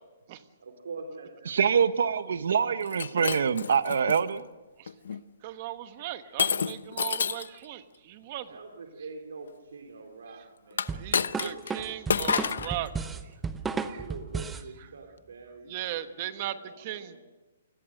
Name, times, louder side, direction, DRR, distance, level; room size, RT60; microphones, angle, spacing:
voice 1, 0.6-1.5 8.4-11.0 11.4-12.5 12.8-13.2 13.9-15.8 16.2-17.2, right 4 dB, 90° right, 2 dB, 3.7 m, -45 dB
voice 2, 1.5-4.4, right 7 dB, 60° right, 12 dB, 1.3 m, -25 dB
Shatter, 2.8-4.2 4.9-5.2 6.4-7.6 10.7-11.7 12.1-12.7, left 6 dB, 70° left, 0.9 m, -29 dB
voice 3, 5.4-8.5 10.9-12.9 13.9-14.0 15.7-17.2, right 13 dB, 25° right, 11 dB, 1.1 m, -37 dB
sound 1, 10.9-14.7, right 5 dB, 5° right, 0.7 m, -33 dB
28.5 x 21.0 x 6.6 m, 1.2 s
hypercardioid pair, 180°, 0 cm